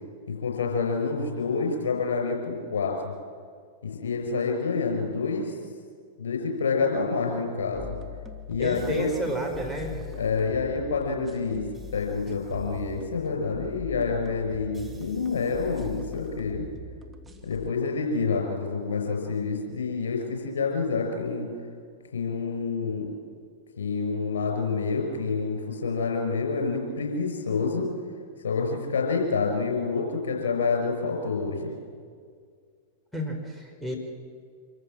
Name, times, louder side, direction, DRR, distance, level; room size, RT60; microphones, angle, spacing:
voice 1, 0.3-3.1 3.8-5.5 6.2-7.9 8.5-9.1 10.2-11.7 11.9-16.6 17.4-21.5 22.1-23.1 23.8-27.9 28.4-31.7, left 4 dB, 70° left, 2 dB, 5.3 m, -28 dB
sound 1, 7.7-17.7, left 3 dB, 15° right, 1.9 m, -42 dB
voice 2, 8.6-10.2 33.1-34.0, equal, ahead, 1 dB, 4.2 m, -31 dB
26.0 x 14.0 x 7.5 m, 2.1 s
figure-of-eight pair, 95°, 0 cm